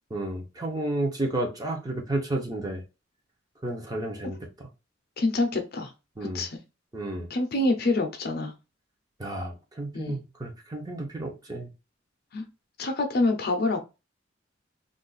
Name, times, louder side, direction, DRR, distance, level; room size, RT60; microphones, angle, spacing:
voice 1, 0.1-2.8 3.6-4.7 6.2-6.4 6.9-7.3 9.2-11.7, right 1 dB, 20° right, 0.6 m, -32 dB
voice 2, 5.2-5.9 6.3-6.6 7.3-8.5 9.9-10.2 12.3-12.5 12.8-13.8, left 2 dB, 50° left, 0.6 m, -26 dB
2.5 x 2.3 x 3.8 m
head